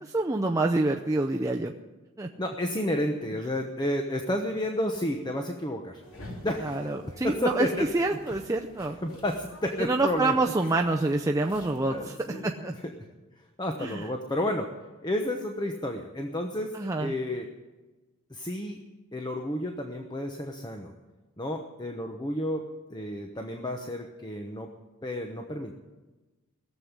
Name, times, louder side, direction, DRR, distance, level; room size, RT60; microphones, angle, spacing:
voice 1, 0.0-1.7 2.2-2.3 6.6-9.0 9.8-12.7 13.8-14.0 16.7-17.1, right 2 dB, 15° right, 1 dB, 0.6 m, -27 dB
voice 2, 2.4-6.0 6.4-8.2 9.0-10.3 11.8-12.9 13.4-14.7 15.0-17.5 18.3-18.8 19.1-20.9 21.4-22.6 22.9-24.7 25.0-25.7, left 1 dB, 20° left, 4 dB, 1.0 m, -31 dB
sound 1, 6.0-12.0, left 1 dB, 70° left, 3.0 m, -47 dB
17.5 x 7.7 x 9.7 m, 1.2 s
head